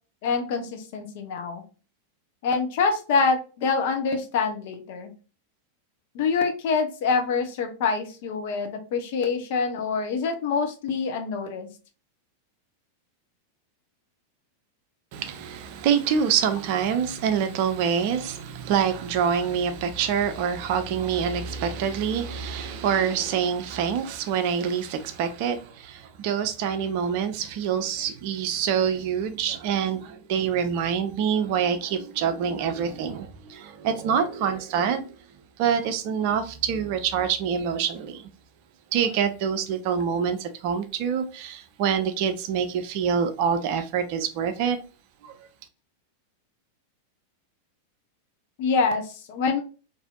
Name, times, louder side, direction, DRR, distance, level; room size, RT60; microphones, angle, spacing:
voice 1, 0.2-1.6 2.4-5.1 6.1-11.7 48.6-49.6, left 5 dB, 50° left, 0.7 m, -25 dB
voice 2, 15.1-35.2 35.6-38.3 38.9-44.8 45.2-45.5, right 7 dB, 45° right, 0.5 m, -26 dB
4.1 x 2.6 x 2.3 m
figure-of-eight pair, 90°, 0 cm